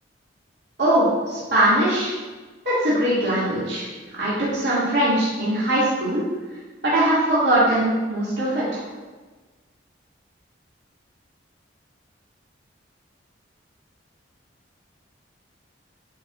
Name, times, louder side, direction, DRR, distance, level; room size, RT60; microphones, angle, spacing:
voice 1, 0.8-2.1 2.6-3.9 4.2-6.2 6.8-8.8, right 1 dB, 60° right, -11 dB, 2.2 m, -21 dB
11.5 x 4.7 x 2.4 m, 1.3 s
head